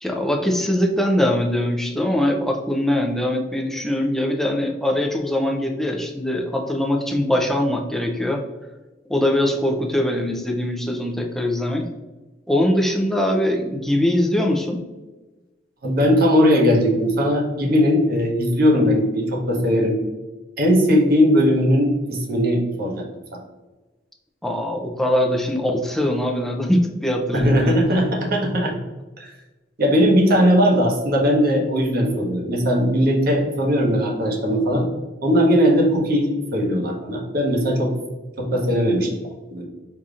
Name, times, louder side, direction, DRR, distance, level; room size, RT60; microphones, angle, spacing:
voice 1, 0.0-8.5 9.1-11.8 12.5-14.8 24.4-27.8, left 1 dB, ahead, 1 dB, 0.4 m, -22 dB
voice 2, 15.8-20.0 20.6-23.0 23.3-23.4 27.3-28.7 29.2-29.3 29.8-34.9 35.2-37.9 38.4-39.1 39.5-39.7, equal, 55° right, 0 dB, 0.9 m, -19 dB
4.9 x 2.7 x 2.4 m, 1.2 s
head